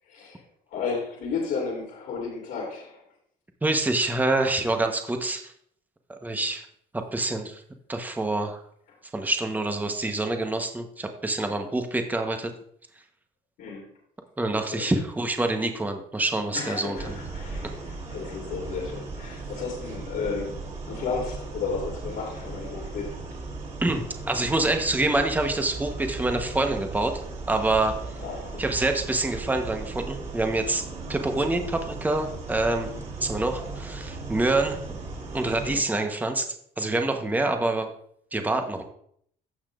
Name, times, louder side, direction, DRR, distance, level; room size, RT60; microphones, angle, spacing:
voice 1, 0.1-0.4 0.7-3.0 13.6-13.8 14.7-14.9 16.5-23.2 28.2-28.6 35.6-35.9, left 5 dB, 80° left, -6 dB, 2.9 m, -33 dB
voice 2, 3.6-5.5 6.2-6.7 6.9-7.6 7.9-8.6 9.1-12.5 14.4-17.2 23.8-27.2 27.5-27.9 28.6-30.8 31.1-32.9 33.2-34.8 35.3-36.5 36.8-37.9 38.3-38.8, right 2 dB, 10° right, 5 dB, 1.0 m, -26 dB
sound 1, 16.9-35.8, right 3 dB, 40° right, 2.7 m, -37 dB
15.5 x 5.8 x 2.5 m, 0.66 s
cardioid pair, 110°, 17 cm